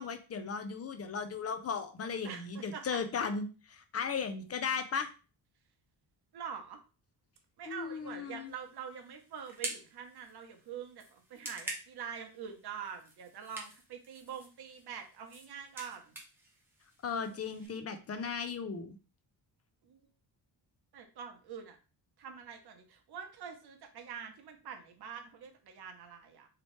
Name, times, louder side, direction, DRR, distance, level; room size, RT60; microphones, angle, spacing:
voice 1, 0.0-5.1 7.7-8.5 17.0-19.0, left 5 dB, 35° left, 8 dB, 0.4 m, -36 dB
voice 2, 2.2-3.0 6.3-6.8 7.6-16.1 17.7-17.8 19.8-20.0 20.9-21.8 22.2-26.5, right 7 dB, 55° right, 4 dB, 0.8 m, -45 dB
sound 1, 8.5-17.7, right 1 dB, 5° right, 0.7 m, -48 dB
3.1 x 2.9 x 3.0 m, 0.33 s
wide cardioid pair, 150°, 45 cm